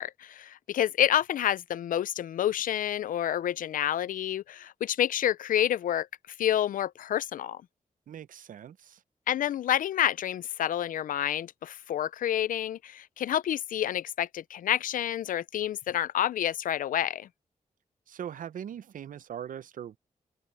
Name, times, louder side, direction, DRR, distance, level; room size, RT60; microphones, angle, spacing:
voice 1, 0.0-6.1 6.4-7.6 9.3-17.3, left 11 dB, 85° left, 0.4 m, -28 dB
voice 2, 8.1-9.0 18.1-20.0, right 9 dB, 80° right, 0.6 m, -40 dB
open air
cardioid pair, 85°, 14 cm